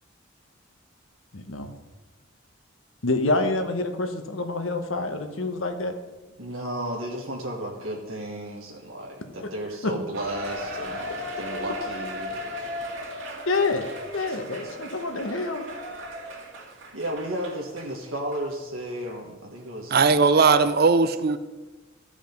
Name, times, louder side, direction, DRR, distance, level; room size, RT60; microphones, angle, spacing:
voice 1, 1.3-1.7 3.0-5.9 9.8-9.9 13.5-13.9 14.1-15.6, left 2 dB, 75° left, 6 dB, 1.1 m, -27 dB
voice 2, 6.4-12.7 14.3-14.4 14.6-14.7 16.9-20.0, right 1 dB, 90° right, -1 dB, 1.4 m, -34 dB
Cheering, 10.1-17.9 18.3-18.4 19.1-19.2, equal, 70° right, 2.3 m, -36 dB
voice 3, 19.9-21.4, right 4 dB, 50° right, 12 dB, 0.5 m, -18 dB
15.0 x 5.1 x 5.2 m, 1.2 s
head